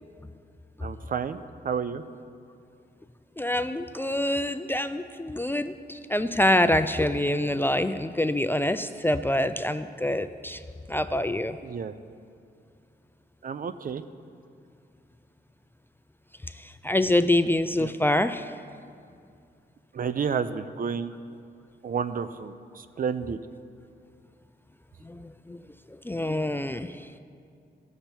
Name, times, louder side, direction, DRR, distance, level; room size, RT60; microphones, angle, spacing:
voice 1, 0.8-1.4 1.6-2.0 11.6-12.0 13.4-14.0 17.8-17.9 19.9-21.1 21.8-23.4, right 6 dB, 50° right, 12 dB, 0.5 m, -30 dB
voice 2, 3.4-10.6 10.9-11.6 16.8-18.5 25.0-25.6 26.0-27.1, left 1 dB, 10° left, 10 dB, 0.4 m, -26 dB
16.0 x 6.7 x 4.4 m, 2.4 s
cardioid pair, 75°, 18 cm